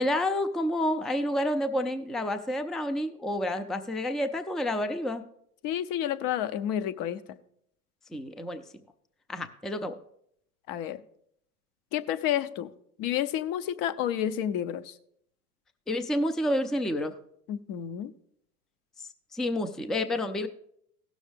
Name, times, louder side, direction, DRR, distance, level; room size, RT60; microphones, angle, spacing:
voice 1, 0.0-5.2 8.1-8.6 9.3-10.0 15.9-17.2 19.0-20.5, left 1 dB, ahead, 8 dB, 0.4 m, -29 dB
voice 2, 5.6-7.4 10.7-11.0 11.9-12.7 13.0-14.9 17.5-18.1, left 10 dB, 45° left, 13 dB, 0.8 m, -30 dB
17.0 x 6.4 x 3.4 m, 0.71 s
hypercardioid pair, 80°, 46 cm